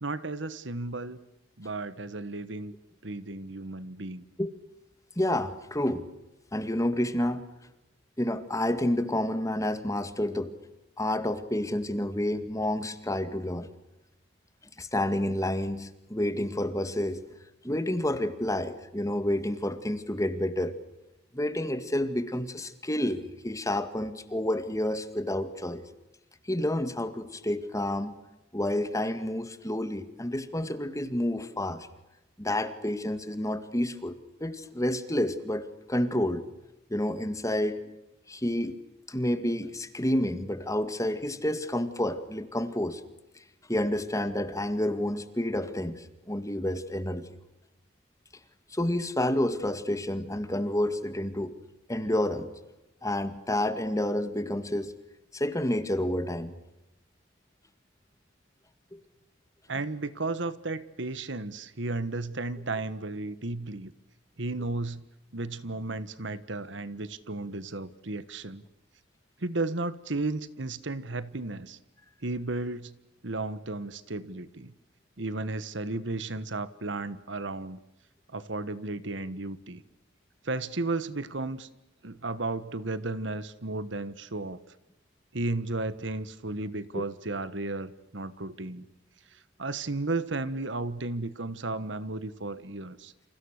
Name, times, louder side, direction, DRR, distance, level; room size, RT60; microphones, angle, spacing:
voice 1, 0.0-1.2 1.6-2.7 3.0-4.2 59.7-63.9 64.4-65.0 65.3-68.6 69.4-71.8 72.2-72.9 73.2-74.7 75.2-77.8 78.3-79.8 80.4-81.7 82.0-84.6 85.3-88.8 89.3-93.1, right 2 dB, 65° right, 15 dB, 1.4 m, -34 dB
voice 2, 5.2-6.1 6.5-7.4 8.2-10.5 11.0-13.7 14.8-17.2 17.6-20.7 21.3-25.8 26.4-28.1 28.5-31.9 32.4-36.4 36.9-37.8 38.3-38.8 39.1-43.0 43.4-43.5 43.7-47.4 48.7-51.5 51.9-52.5 53.0-54.9 55.3-56.5 58.9-59.0 86.9-87.0, left 1 dB, 15° left, 10 dB, 2.1 m, -29 dB
29.5 x 28.0 x 6.6 m, 0.93 s
head